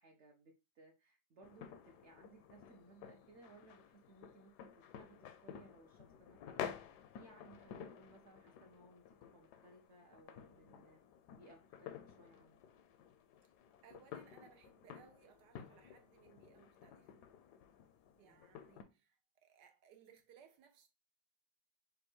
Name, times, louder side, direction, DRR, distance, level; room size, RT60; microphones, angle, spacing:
voice 1, 0.0-6.7 7.1-11.0 11.3-12.6 18.2-18.5, right 2 dB, 55° right, 0.8 m, -62 dB
sound 1, 1.4-18.8, left 9 dB, 80° left, 1.2 m, -52 dB
voice 2, 13.8-17.3 18.2-20.9, right 8 dB, 85° right, 1.4 m, -64 dB
5.3 x 2.2 x 4.3 m
omnidirectional pair, 1.8 m